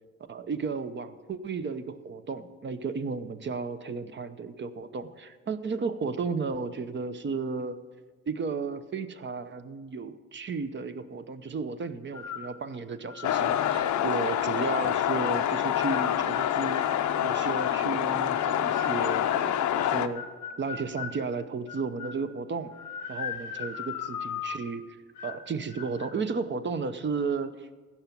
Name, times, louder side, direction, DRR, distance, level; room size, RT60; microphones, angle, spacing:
voice 1, 0.3-7.8 8.3-16.9 17.2-20.2 20.6-22.7 23.1-25.0 25.2-27.7, right 4 dB, 40° right, 10 dB, 0.8 m, -33 dB
sound 1, 12.1-12.5 13.1-13.7 14.3-15.3 15.9-17.8 18.4-21.2 21.7-22.3 22.7-24.7 25.2-25.4 25.7-26.1, left 7 dB, 90° left, 1.1 m, -39 dB
sound 2, 13.2-20.1, left 11 dB, 70° left, 0.7 m, -27 dB
15.5 x 5.9 x 6.9 m, 1.4 s
cardioid pair, 90°, 30 cm